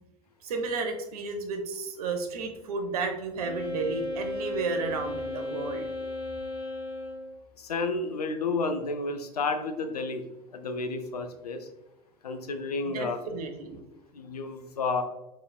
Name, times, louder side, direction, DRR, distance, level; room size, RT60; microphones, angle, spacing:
voice 1, 0.4-5.9 12.8-13.8, right 4 dB, 70° right, 5 dB, 0.8 m, -32 dB
Wind instrument woodwind instrument, 3.4-7.4, left 1 dB, 5° right, 1.4 m, -35 dB
voice 2, 7.6-10.2 10.5-11.7 12.2-13.2 14.1-15.0, left 3 dB, 85° left, 7 dB, 0.5 m, -31 dB
4.9 x 4.1 x 2.2 m, 0.96 s
figure-of-eight pair, 70°, 20 cm